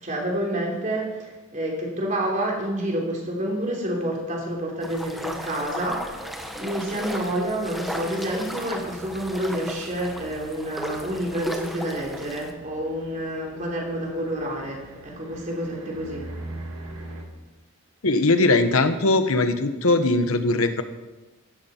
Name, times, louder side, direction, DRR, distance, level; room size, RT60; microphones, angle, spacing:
voice 1, 0.0-6.3 6.6-16.3, right 1 dB, 35° right, -2 dB, 3.5 m, -29 dB
sound 1, 4.1-17.2, right 2 dB, 75° right, 2.5 m, -43 dB
sound 2, 4.8-12.5, equal, ahead, 1.1 m, -35 dB
voice 2, 18.0-20.8, left 2 dB, 75° left, 9 dB, 1.1 m, -20 dB
15.5 x 12.5 x 4.4 m, 1.1 s
head